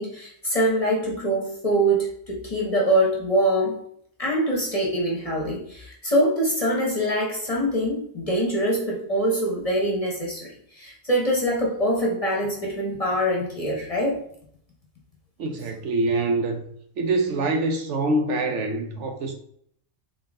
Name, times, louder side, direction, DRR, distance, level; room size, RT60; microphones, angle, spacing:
voice 1, 0.0-3.8 4.2-14.2, right 1 dB, 30° left, 0.9 m, -24 dB
voice 2, 15.4-16.6 17.0-19.3, right 2 dB, 65° right, 0.9 m, -25 dB
3.8 x 3.8 x 3.6 m
omnidirectional pair, 1.4 m